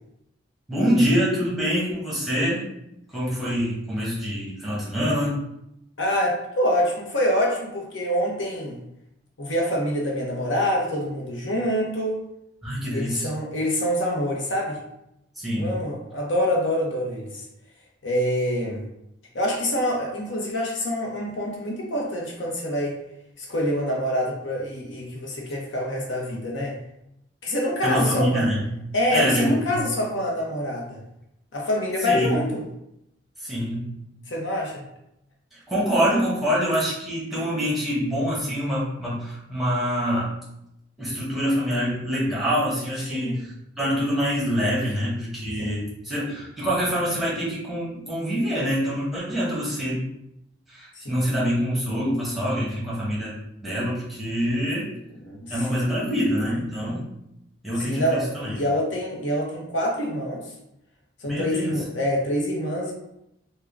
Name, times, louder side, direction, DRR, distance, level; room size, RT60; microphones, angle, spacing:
voice 1, 0.7-2.6 3.1-5.4 12.6-13.3 15.4-15.7 27.8-28.8 29.1-29.9 32.0-32.4 33.4-33.9 35.5-40.3 41.0-43.5 43.8-50.0 50.7-53.3 53.6-54.9 55.5-57.0 57.6-58.6 61.3-61.7, equal, ahead, -8 dB, 1.0 m, -25 dB
voice 2, 6.0-8.8 9.4-12.2 12.9-14.8 15.6-17.4 18.0-18.8 19.3-23.0 23.4-26.8 27.4-28.5 28.9-31.0 31.5-32.6 34.3-34.8 43.1-43.4 45.6-45.8 51.0-51.2 55.2-55.9 57.8-60.4 61.2-62.9, equal, 70° left, -1 dB, 0.8 m, -26 dB
3.5 x 2.1 x 3.4 m, 0.82 s
head